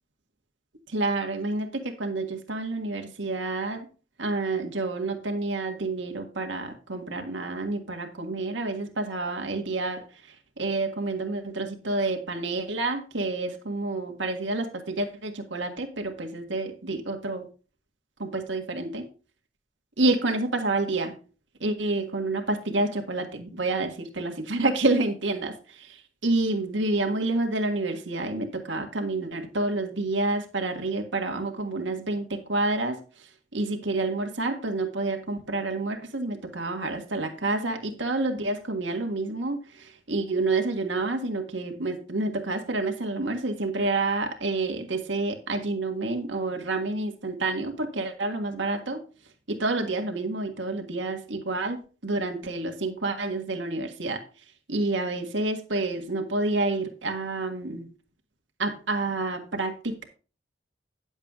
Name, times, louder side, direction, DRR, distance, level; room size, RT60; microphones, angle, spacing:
voice 1, 0.9-3.9 4.2-10.0 10.6-17.5 18.2-19.1 20.0-21.2 21.6-33.0 33.5-49.0 49.5-51.8 52.0-54.2 54.7-57.9 58.6-60.0, right 2 dB, 85° right, 4 dB, 1.7 m, -28 dB
10.5 x 7.2 x 3.6 m, 0.35 s
head